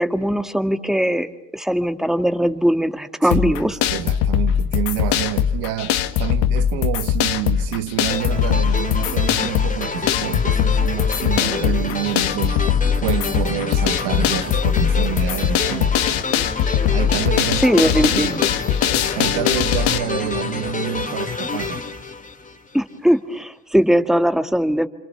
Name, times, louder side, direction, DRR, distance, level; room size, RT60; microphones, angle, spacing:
voice 1, 0.0-3.8 17.6-18.5 22.7-24.9, equal, ahead, 1.8 m, -20 dB
voice 2, 3.2-12.6 13.0-16.0 16.9-18.7 19.1-21.9, right 11 dB, 85° right, 1.9 m, -28 dB
sound 1, 3.3-20.0, left 9 dB, 80° left, 1.9 m, -21 dB
sound 2, 8.1-22.9, left 3 dB, 20° left, 2.5 m, -28 dB
29.0 x 27.0 x 7.0 m
cardioid pair, 110°, 39 cm